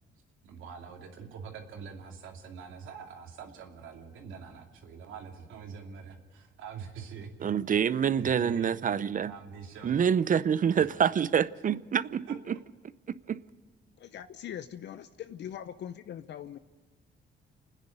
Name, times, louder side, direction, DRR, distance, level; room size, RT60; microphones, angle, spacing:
voice 1, 0.4-7.5 8.2-8.7 9.2-10.0 10.7-11.0 12.3-12.4, right 6 dB, 80° right, 2.7 m, -44 dB
voice 2, 7.4-9.3 9.8-12.2 12.5-12.6 13.3-13.4, right 8 dB, 40° right, 0.6 m, -26 dB
voice 3, 14.0-16.6, left 10 dB, 60° left, 0.7 m, -41 dB
29.0 x 10.0 x 9.2 m
cardioid pair, 90°, 20 cm